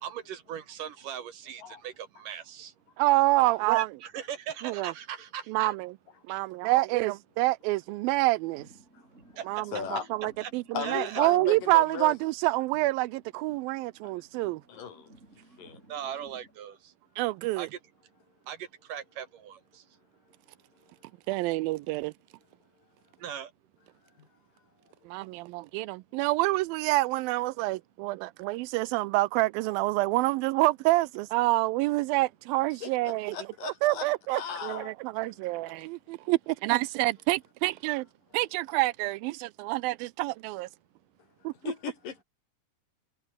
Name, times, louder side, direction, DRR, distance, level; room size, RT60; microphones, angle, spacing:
voice 1, 0.0-2.7 3.7-5.8 6.3-6.4 9.4-9.5 10.4-10.5 10.8-11.2 15.9-16.8 17.6-17.7 18.5-19.6 23.2-23.5, right 9 dB, 65° right, 3.4 m, -39 dB
voice 2, 3.0-3.9 4.6-4.9 5.5-5.9 6.3-8.7 9.5-14.6 17.2-17.7 21.3-22.1 25.1-33.4 33.6-38.1 38.3-40.7 41.4-41.5, right 20 dB, 85° right, 2.3 m, -27 dB
sound 1, 8.4-12.3 12.6-16.6, right 2 dB, 20° right, 5.6 m, -57 dB
voice 3, 9.7-10.3 10.7-12.1 14.0-14.1 14.7-15.1 15.6-15.8 24.2-24.3 32.8-35.0 35.2-35.3 35.6-35.9 41.6-42.2, left 7 dB, 65° left, 4.6 m, -37 dB
omnidirectional pair, 4.2 m